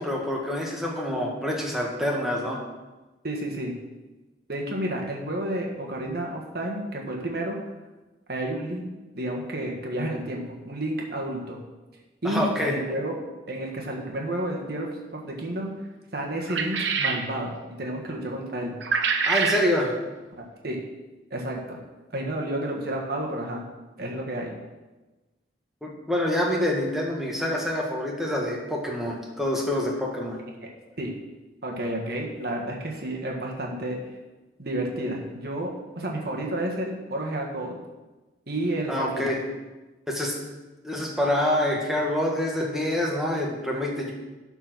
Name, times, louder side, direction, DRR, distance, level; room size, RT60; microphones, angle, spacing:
voice 1, 0.0-2.6 12.2-12.7 19.3-19.9 25.8-30.4 38.9-39.4 40.1-40.3 40.8-44.1, left 1 dB, ahead, -2 dB, 1.5 m, -26 dB
voice 2, 3.2-3.7 4.5-7.6 8.3-8.8 9.1-11.6 12.2-13.2 13.5-15.7 16.1-18.8 20.4-20.8 21.3-21.8 22.1-23.6 24.0-24.5 30.6-30.7 31.0-31.1 31.6-34.0 34.6-37.8 38.5-39.3, right 1 dB, 55° right, 0 dB, 1.6 m, -31 dB
sound 1, 16.5-17.3 18.8-19.7, right 5 dB, 75° right, 0.9 m, -25 dB
11.5 x 4.5 x 6.1 m, 1.1 s
head